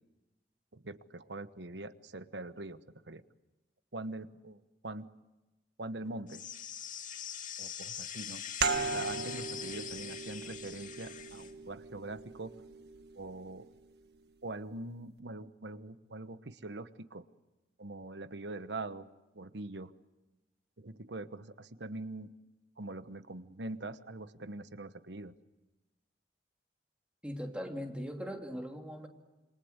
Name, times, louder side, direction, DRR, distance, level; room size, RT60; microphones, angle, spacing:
voice 1, 0.7-3.2 3.9-5.1 5.8-6.5 7.6-8.5 8.9-12.5 13.1-13.7 14.4-17.2 17.8-19.1 19.3-19.9 20.8-22.3 22.8-25.3, right 2 dB, 90° right, 12 dB, 1.2 m, -43 dB
sound 1, 6.3-11.5, left 9 dB, 50° left, 2.4 m, -43 dB
sound 2, 8.6-13.9, right 4 dB, 65° right, 1.6 m, -38 dB
voice 2, 27.2-29.1, equal, 5° right, 2 dB, 3.0 m, -40 dB
28.0 x 25.0 x 8.1 m, 1.1 s
head